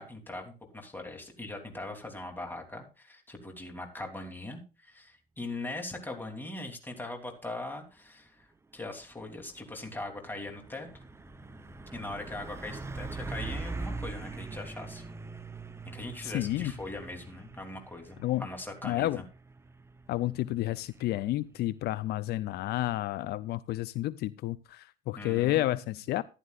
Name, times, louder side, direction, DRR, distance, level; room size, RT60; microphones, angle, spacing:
voice 1, 0.0-8.5 8.7-10.9 11.9-15.0 15.8-19.2 25.1-26.0, left 2 dB, 10° left, 3 dB, 3.1 m, -41 dB
Truck, 8.9-23.2, right 3 dB, 15° right, 0.7 m, -43 dB
voice 2, 16.2-16.7 18.2-18.5 18.8-19.2 20.1-26.2, left 15 dB, 70° left, 17 dB, 0.5 m, -30 dB
15.0 x 11.0 x 2.4 m, 0.31 s
cardioid pair, 110°, 17 cm